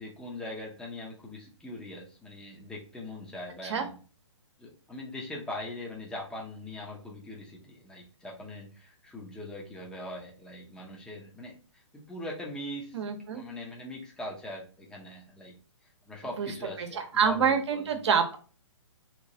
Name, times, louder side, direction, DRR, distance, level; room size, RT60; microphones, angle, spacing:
voice 1, 0.0-4.0 4.6-13.0 13.3-15.5 16.0-17.9, left 1 dB, 5° left, -2 dB, 0.7 m, -41 dB
voice 2, 12.9-13.4 16.4-16.5 16.8-18.4, right 6 dB, 60° right, 6 dB, 0.9 m, -27 dB
3.1 x 3.0 x 2.7 m, 0.38 s
hypercardioid pair, 135°, 16 cm